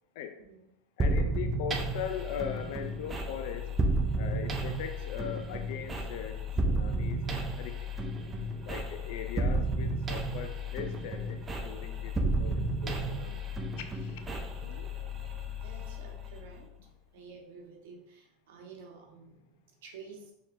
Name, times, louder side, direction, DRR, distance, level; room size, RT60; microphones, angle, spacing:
voice 1, 0.4-0.7 14.6-14.9 15.6-16.7 17.1-20.3, right 5 dB, 80° right, 0 dB, 1.2 m, -50 dB
voice 2, 1.0-3.7 4.2-7.9 8.6-11.4 11.6-13.5 13.8-14.2, left 8 dB, 65° left, 7 dB, 0.4 m, -40 dB
sound 1, 1.0-16.6, right 1 dB, 20° right, 0.5 m, -32 dB
4.8 x 3.4 x 2.6 m, 0.82 s
supercardioid pair, 140°, 0 cm